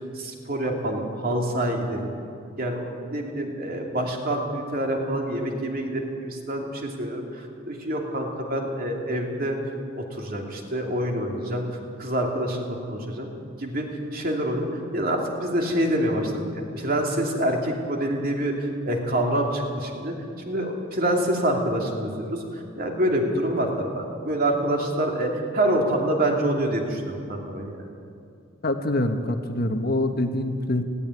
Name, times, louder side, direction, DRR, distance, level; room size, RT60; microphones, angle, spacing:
voice 1, 0.1-2.1 2.6-9.6 9.9-11.7 12.0-13.3 13.6-20.2 20.4-27.8, right 1 dB, 45° right, 1 dB, 2.9 m, -26 dB
voice 2, 28.6-30.8, left 1 dB, 45° left, 6 dB, 1.2 m, -25 dB
18.5 x 16.0 x 9.7 m, 2.4 s
head